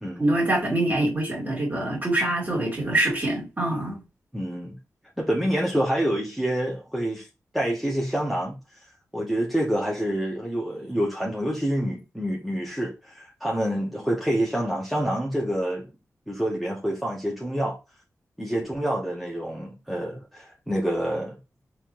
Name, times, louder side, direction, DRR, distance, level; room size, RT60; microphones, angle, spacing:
voice 1, 0.2-4.0, right 1 dB, 30° right, 2.2 m, -24 dB
voice 2, 4.3-4.8 5.2-7.3 7.5-8.6 9.1-15.9 16.3-17.8 18.4-21.4, right 1 dB, ahead, 0.9 m, -27 dB
4.2 x 3.0 x 2.5 m
wide cardioid pair, 80°, 6 cm